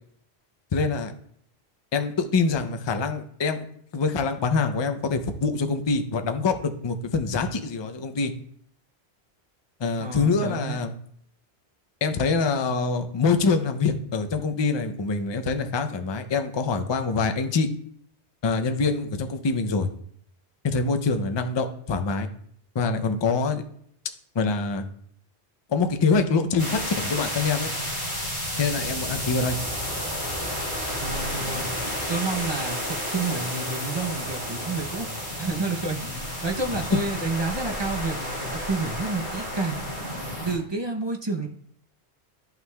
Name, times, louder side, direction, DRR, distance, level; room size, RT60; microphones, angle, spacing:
voice 1, 0.7-1.1 1.9-3.7 3.9-8.3 9.8-10.9 12.0-17.7 18.4-19.9 20.6-22.3 22.7-23.6 24.3-24.8 25.7-27.7 28.6-29.6 36.9-37.0, left 4 dB, 40° left, 7 dB, 0.4 m, -25 dB
voice 2, 10.0-10.8 31.0-31.7 32.1-35.1 35.4-39.9 40.4-41.5, right 3 dB, 30° right, 2 dB, 0.6 m, -30 dB
sound 1, 26.6-40.5, left 1 dB, 20° left, 3.1 m, -31 dB
11.0 x 5.7 x 2.3 m, 0.65 s
omnidirectional pair, 1.2 m